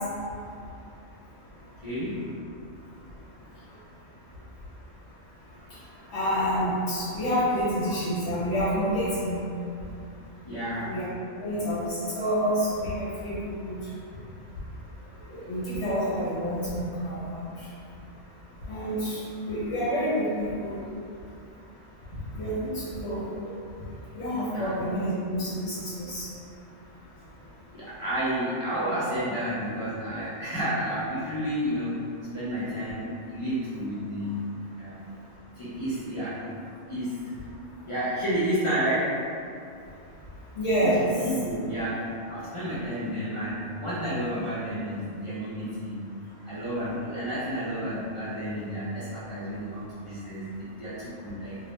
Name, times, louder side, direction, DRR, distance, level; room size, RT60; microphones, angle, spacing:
voice 1, 1.8-2.3 10.4-10.9 24.5-24.8 27.7-32.0 32.3-34.4 34.8-35.1 35.6-36.5 36.9-37.3 37.8-39.1 40.8-46.0 46.4-51.6, equal, 50° left, -12 dB, 0.3 m, -31 dB
voice 2, 6.1-9.4 10.8-11.0 11.4-13.8 15.3-17.5 18.7-20.8 22.4-22.5 23.0-23.5 24.1-26.3 40.6-41.0, equal, 65° left, -9 dB, 0.9 m, -28 dB
2.3 x 2.1 x 2.8 m, 2.5 s
omnidirectional pair, 1.3 m